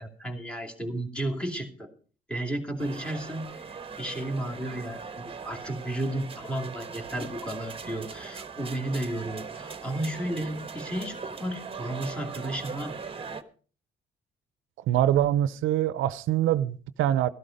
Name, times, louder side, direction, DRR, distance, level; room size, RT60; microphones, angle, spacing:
voice 1, 0.0-1.9 2.3-12.9, right 1 dB, 5° left, 2.6 m, -33 dB
sound 1, 2.8-13.4, right 5 dB, 30° right, 1.2 m, -40 dB
voice 2, 14.9-17.3, right 12 dB, 85° right, 0.6 m, -24 dB
13.0 x 12.5 x 5.1 m
cardioid pair, 90°, 20 cm